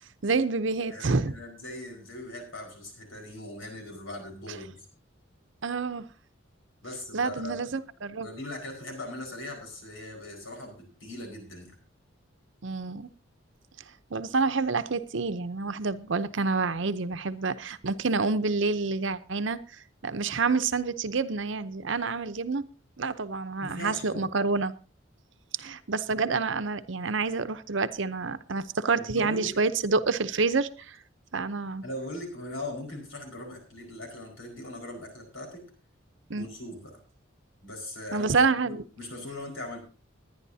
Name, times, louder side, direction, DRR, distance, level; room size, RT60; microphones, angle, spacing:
voice 1, 0.2-1.4 5.6-6.0 7.1-8.3 12.6-13.1 14.1-19.6 20.0-22.7 23.0-24.7 25.6-31.0 31.3-31.8 36.3-36.5 38.1-38.8, right 4 dB, 65° right, 12 dB, 0.8 m, -28 dB
voice 2, 0.9-4.9 6.8-7.6 8.2-11.8 23.6-24.3 29.1-29.6 31.8-35.6 36.4-37.0 37.6-38.3 38.6-39.8, left 1 dB, 75° left, 2 dB, 5.0 m, -40 dB
21.0 x 10.0 x 2.8 m, 0.35 s
head